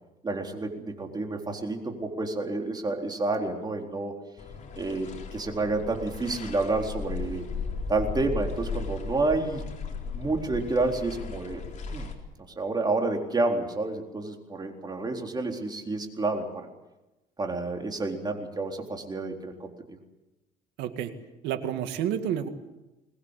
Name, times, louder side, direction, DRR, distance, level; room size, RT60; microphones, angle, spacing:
voice 1, 0.2-4.1 4.8-7.5 7.9-9.6 10.1-11.6 11.9-12.1 12.6-16.7 17.4-20.0, right 3 dB, 25° right, 2 dB, 3.9 m, -29 dB
sound 1, 4.4-12.1, left 4 dB, 45° left, 4.1 m, -36 dB
voice 2, 20.8-21.1 21.4-22.5, right 10 dB, 85° right, 7 dB, 2.2 m, -29 dB
22.5 x 19.5 x 8.2 m, 1.0 s
cardioid pair, 110°, 17 cm